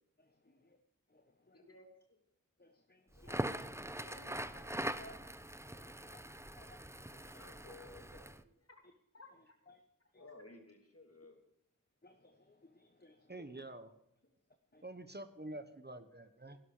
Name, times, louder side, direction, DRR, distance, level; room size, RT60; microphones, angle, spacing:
voice 1, 0.2-0.8 1.1-1.8 2.6-3.4 5.1-5.2 5.7-7.4 8.8-8.9 9.3-9.8 10.1-10.3 12.0-13.6 14.7-15.0, left 2 dB, 30° left, 7 dB, 1.2 m, -65 dB
voice 2, 1.5-2.2 3.1-3.5 3.9-5.2 7.4-8.7 9.1-9.3 10.2-11.4 14.7-15.1 16.4-16.6, left 2 dB, 45° left, 3 dB, 3.1 m, -57 dB
Crackle, 3.2-8.4, right 1 dB, 10° right, 0.8 m, -42 dB
voice 3, 13.3-13.9 14.8-16.6, right 2 dB, 30° right, 10 dB, 1.2 m, -47 dB
17.5 x 11.0 x 5.0 m, 0.78 s
wide cardioid pair, 60°, 32 cm